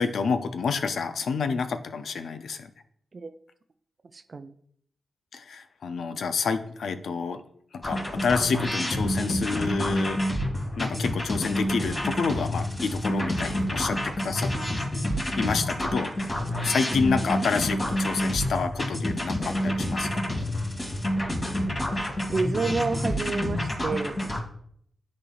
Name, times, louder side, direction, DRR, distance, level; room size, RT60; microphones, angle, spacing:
voice 1, 0.0-2.7 5.3-7.4 7.7-10.2 10.8-14.5 15.3-20.1, left 5 dB, 75° left, 9 dB, 0.5 m, -28 dB
voice 2, 4.1-4.5 16.5-16.6 22.3-24.2, right 4 dB, 50° right, 9 dB, 0.5 m, -29 dB
sound 1, 7.8-24.4, equal, 30° left, 2.1 m, -28 dB
9.9 x 4.1 x 2.4 m, 0.64 s
cardioid pair, 50°, 0 cm